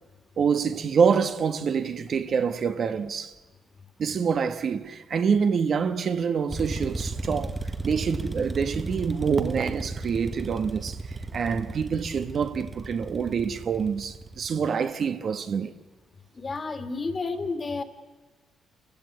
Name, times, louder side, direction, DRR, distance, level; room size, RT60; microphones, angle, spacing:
voice 1, 0.4-3.3 4.0-7.6 7.8-15.7, right 6 dB, 55° right, 1.2 m, -26 dB
sound 1, 6.5-14.6, right 2 dB, 15° right, 1.3 m, -35 dB
voice 2, 16.4-17.8, left 3 dB, 35° left, 2.4 m, -31 dB
28.5 x 16.0 x 8.5 m
cardioid pair, 90°, 0 cm